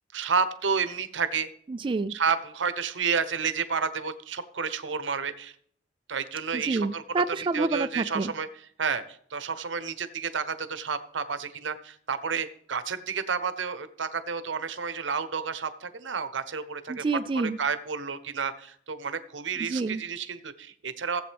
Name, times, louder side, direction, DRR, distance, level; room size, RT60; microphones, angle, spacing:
voice 1, 0.1-1.5 2.1-5.5 6.1-7.0 7.5-9.0 9.3-17.0 17.3-21.2, right 6 dB, 85° right, 12 dB, 0.9 m, -30 dB
voice 2, 1.7-2.1 6.5-8.3 16.9-17.6 19.6-20.0, right 3 dB, 30° right, 10 dB, 0.3 m, -28 dB
16.5 x 7.9 x 3.4 m, 0.63 s
head